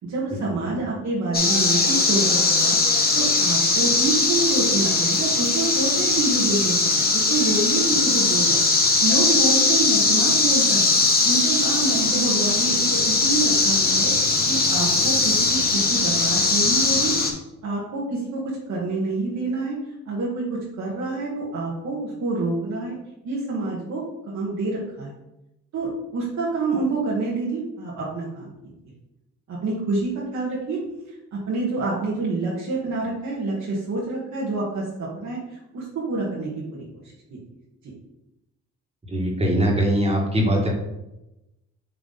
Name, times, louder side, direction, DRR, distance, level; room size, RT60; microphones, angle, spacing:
voice 1, 0.0-8.6 9.0-10.9 11.2-17.1 17.6-19.8 20.1-23.0 23.2-25.1 25.7-28.5 29.5-30.8 31.3-35.4 35.7-37.0 37.3-37.4, right 3 dB, 65° right, -4 dB, 1.7 m, -27 dB
sound 1, 1.3-17.3, left 3 dB, 30° left, 1.3 m, -20 dB
voice 2, 39.1-40.7, equal, 20° right, -1 dB, 2.0 m, -21 dB
8.4 x 3.4 x 4.0 m, 0.93 s
cardioid pair, 90°, 30 cm